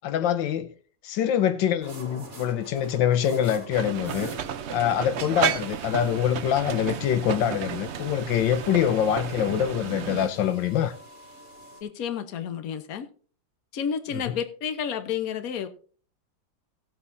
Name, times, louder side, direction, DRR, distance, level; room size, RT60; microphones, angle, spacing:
voice 1, 0.0-0.7 1.0-4.3 4.7-10.9 14.3-14.4, left 10 dB, 80° left, 1.5 m, -25 dB
sound 1, 1.8-11.8, right 1 dB, 50° right, 2.6 m, -46 dB
sound 2, 3.7-10.3, right 9 dB, 75° right, 0.6 m, -32 dB
voice 2, 11.8-13.1 13.7-15.7, left 7 dB, 55° left, 1.4 m, -31 dB
17.0 x 8.5 x 2.7 m
omnidirectional pair, 2.0 m